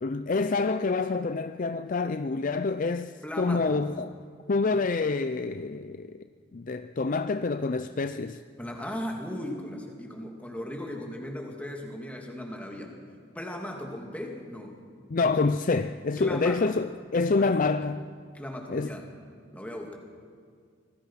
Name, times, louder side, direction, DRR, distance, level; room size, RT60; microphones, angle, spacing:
voice 1, 0.0-4.1 4.5-6.2 6.5-8.4 15.1-18.1 18.7-18.9, left 3 dB, 40° left, 0.5 m, -27 dB
voice 2, 3.2-3.9 8.6-12.9 13.3-14.8 16.2-16.8 17.4-17.5 18.3-19.1 19.5-20.0, left 1 dB, 5° left, 2.6 m, -37 dB
27.0 x 19.0 x 5.7 m
head